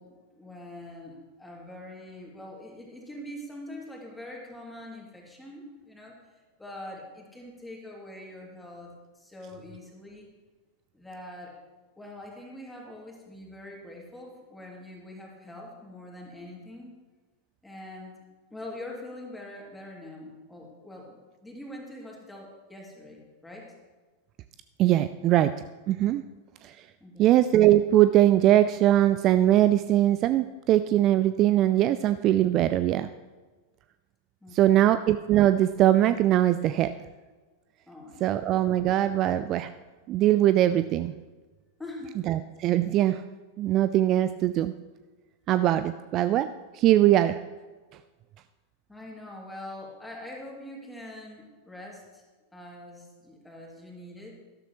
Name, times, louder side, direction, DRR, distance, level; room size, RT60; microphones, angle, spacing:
voice 1, 0.0-6.1 6.6-10.3 10.9-11.6 12.0-16.9 17.6-18.2 18.5-23.7 27.0-27.3 34.4-34.9 37.9-38.4 41.8-42.3 48.9-52.2 52.5-54.4, left 1 dB, 5° left, -1 dB, 2.5 m, -44 dB
voice 2, 24.8-25.5 25.9-26.2 26.6-26.8 27.2-33.1 34.5-36.9 38.2-39.7 40.1-41.1 42.3-43.2 43.6-44.7 45.5-47.4, right 13 dB, 35° right, 12 dB, 0.3 m, -21 dB
12.5 x 12.0 x 3.0 m, 1.3 s
figure-of-eight pair, 90°, 0 cm